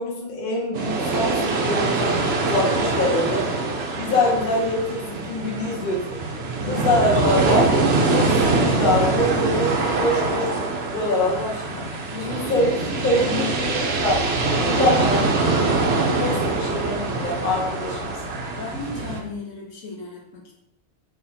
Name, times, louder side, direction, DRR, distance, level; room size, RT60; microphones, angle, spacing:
voice 1, 0.0-3.5 3.9-6.0 6.7-7.7 8.1-11.8 12.3-12.7 13.0-14.2 14.6-15.4 16.1-18.3, left 1 dB, 45° left, -1 dB, 0.8 m, -24 dB
sound 1, 0.7-19.2, right 3 dB, 60° right, 0.7 m, -23 dB
voice 2, 12.1-13.7 18.6-20.5, left 4 dB, 65° left, -1 dB, 1.0 m, -35 dB
3.9 x 3.2 x 2.7 m, 0.83 s
omnidirectional pair, 1.5 m